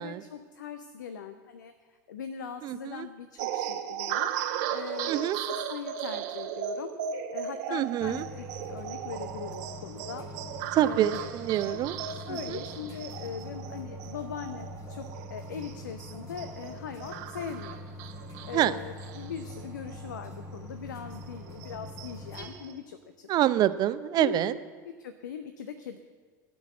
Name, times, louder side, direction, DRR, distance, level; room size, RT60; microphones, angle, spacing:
voice 1, 0.0-4.3 4.7-10.3 10.6-11.3 11.7-17.8 18.4-23.5 24.2-26.0, left 7 dB, 75° left, 9 dB, 0.7 m, -41 dB
voice 2, 2.6-3.1 5.1-5.4 7.7-8.2 10.7-12.0 12.3-12.6 18.5-18.8 23.3-24.6, right 12 dB, 45° right, 14 dB, 0.6 m, -26 dB
sound 1, 3.4-20.3 20.6-20.7 21.1-22.7, right 9 dB, 60° right, 1.0 m, -37 dB
sound 2, 8.0-22.5, left 1 dB, 35° left, 2.9 m, -44 dB
13.0 x 6.2 x 8.4 m, 1.5 s
figure-of-eight pair, 75°, 10 cm